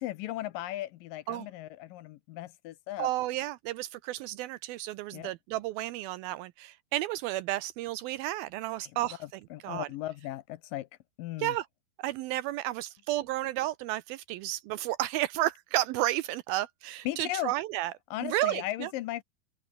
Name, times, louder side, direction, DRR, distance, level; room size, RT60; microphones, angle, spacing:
voice 1, 0.0-3.1 5.1-5.3 8.8-8.9 9.5-10.9 11.2-11.6 17.1-17.5 18.1-19.2, left 15 dB, 75° left, 2.2 m, -36 dB
voice 2, 3.0-9.2 9.6-9.9 11.4-11.7 12.0-17.9 18.2-18.9, right 15 dB, 80° right, 2.4 m, -32 dB
open air
omnidirectional pair, 4.5 m